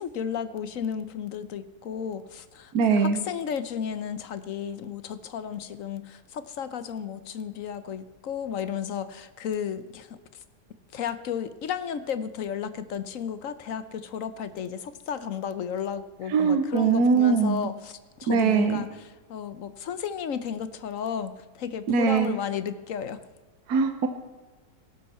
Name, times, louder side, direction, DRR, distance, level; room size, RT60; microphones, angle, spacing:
voice 1, 0.0-10.2 10.9-23.2, left 8 dB, 60° left, 13 dB, 1.0 m, -33 dB
voice 2, 2.7-3.2 16.3-17.7 18.3-18.8 21.9-22.4 23.7-24.1, right 5 dB, 70° right, 7 dB, 1.4 m, -22 dB
17.5 x 12.0 x 4.3 m, 1.3 s
omnidirectional pair, 1.7 m